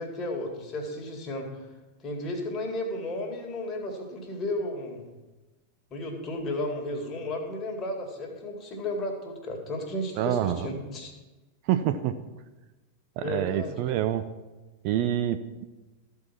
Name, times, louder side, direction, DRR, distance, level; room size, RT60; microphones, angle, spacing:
voice 1, 0.0-1.7 2.0-5.0 5.9-11.1 13.2-14.1, left 1 dB, 25° left, 1 dB, 2.1 m, -33 dB
voice 2, 10.2-10.7 11.7-12.2 13.2-14.2 14.8-15.6, right 11 dB, 45° right, 10 dB, 0.5 m, -27 dB
14.0 x 4.7 x 6.0 m, 1.1 s
figure-of-eight pair, 90°, 0 cm